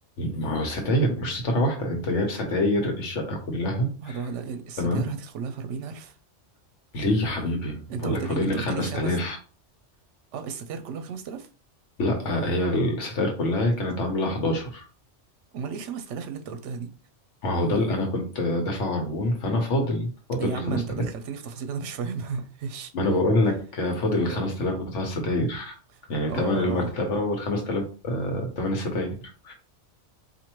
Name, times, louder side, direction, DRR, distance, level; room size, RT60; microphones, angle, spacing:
voice 1, 0.2-4.2 4.8-5.0 6.9-9.4 12.0-14.9 17.4-21.0 22.9-25.7 26.1-29.5, left 1 dB, 80° left, 1.3 m, -26 dB
voice 2, 4.0-6.2 7.9-9.2 10.3-11.5 15.5-16.9 20.4-22.9 24.2-24.5 25.9-26.0 26.3-27.0, right 6 dB, 80° right, 0.9 m, -34 dB
4.3 x 2.6 x 3.0 m
omnidirectional pair, 1.2 m